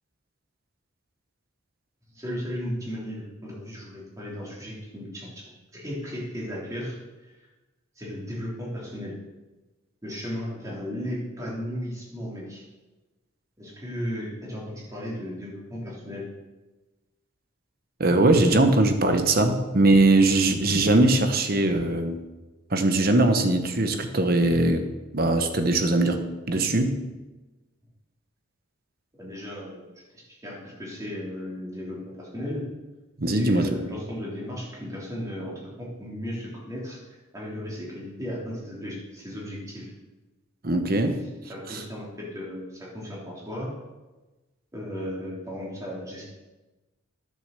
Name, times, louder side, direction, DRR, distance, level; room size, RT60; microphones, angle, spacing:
voice 1, 2.1-7.0 7.2-7.3 8.0-9.2 10.0-12.6 13.6-16.3 29.2-29.9 30.4-32.6 33.3-37.0 37.3-39.9 41.5-43.7 44.7-46.2, equal, 15° right, -5 dB, 3.2 m, -35 dB
voice 2, 18.0-22.2 22.7-24.9 25.1-26.2 26.5-27.0 33.2-33.7 40.6-41.2 41.7-41.8, right 2 dB, 45° right, 7 dB, 1.0 m, -21 dB
10.5 x 6.5 x 6.8 m, 1.1 s
head